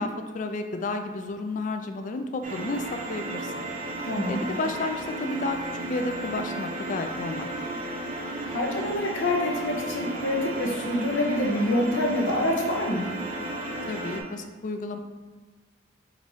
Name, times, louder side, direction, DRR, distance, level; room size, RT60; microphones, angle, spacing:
voice 1, 0.0-3.6 4.3-5.6 5.9-7.5 13.9-15.0, left 3 dB, 45° left, 6 dB, 0.3 m, -32 dB
sound 1, 2.4-14.2, right 2 dB, 45° right, 0.6 m, -34 dB
voice 2, 4.0-4.5 8.5-13.1, left 1 dB, 90° left, 0 dB, 0.8 m, -26 dB
5.1 x 3.0 x 2.7 m, 1.4 s
head